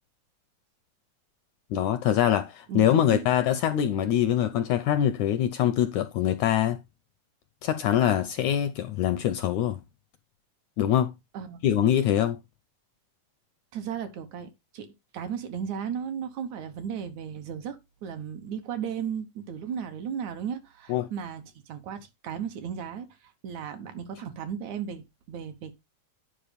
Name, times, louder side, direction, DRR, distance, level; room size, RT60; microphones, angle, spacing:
voice 1, 1.7-6.8 7.6-9.8 10.8-11.1 11.6-12.4 20.9-21.1, left 10 dB, 80° left, 1.7 m, -24 dB
voice 2, 2.7-3.2 11.3-11.6 13.7-25.7, right 7 dB, 70° right, 2.1 m, -35 dB
10.0 x 4.9 x 5.1 m
omnidirectional pair, 3.9 m